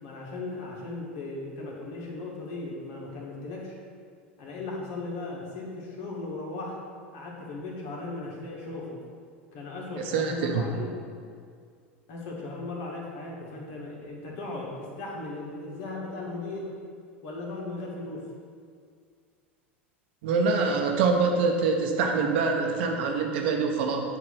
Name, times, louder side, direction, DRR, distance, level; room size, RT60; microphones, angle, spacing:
voice 1, 0.0-3.8 4.4-6.8 7.1-9.0 9.5-10.9 12.1-16.8 17.2-18.3, left 2 dB, 55° left, -3 dB, 1.7 m, -37 dB
voice 2, 10.1-10.6 20.2-24.0, right 4 dB, 65° right, 2 dB, 0.9 m, -25 dB
7.8 x 2.9 x 6.2 m, 2.2 s
hypercardioid pair, 85°, 6 cm